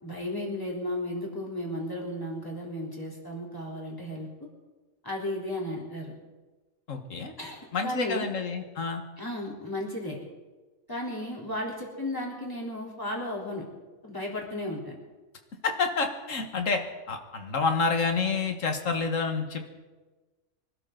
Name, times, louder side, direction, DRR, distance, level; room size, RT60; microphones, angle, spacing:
voice 1, 0.0-4.3 5.0-6.1 7.4-8.3 9.2-10.2 10.9-13.7 14.0-15.0, left 1 dB, 15° left, -3 dB, 3.6 m, -34 dB
voice 2, 6.9-7.3 7.7-9.0 15.6-19.7, left 4 dB, 65° left, 5 dB, 1.9 m, -28 dB
24.5 x 12.5 x 3.9 m, 1.2 s
omnidirectional pair, 1.5 m